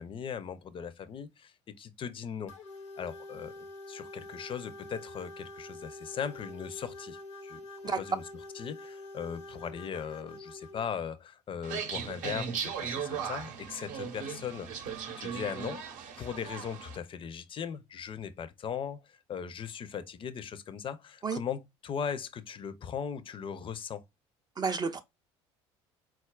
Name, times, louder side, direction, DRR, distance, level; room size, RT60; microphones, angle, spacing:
voice 1, 0.0-2.5 3.0-7.6 8.0-8.2 8.6-14.7 15.2-15.8 16.2-24.0, left 7 dB, 35° left, 0.5 m, -38 dB
sound 1, 2.5-10.9, left 2 dB, 85° left, 0.8 m, -46 dB
sound 2, 11.6-17.0, right 7 dB, 60° right, 0.7 m, -37 dB
voice 2, 24.6-25.0, right 5 dB, 25° right, 0.4 m, -30 dB
4.0 x 2.3 x 2.2 m
hypercardioid pair, 65°, 15 cm